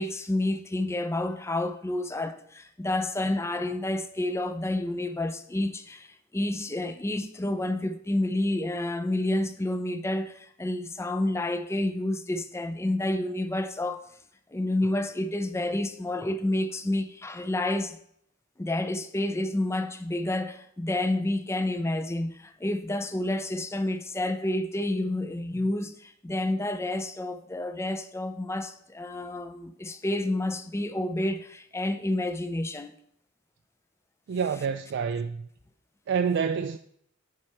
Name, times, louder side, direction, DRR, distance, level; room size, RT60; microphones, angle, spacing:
voice 1, 0.0-14.1 14.5-18.0 18.6-32.9, left 1 dB, 15° left, 0.4 m, -29 dB
voice 2, 34.3-35.5 36.1-36.8, right 6 dB, 55° right, 0.3 m, -27 dB
9.8 x 4.3 x 4.7 m
head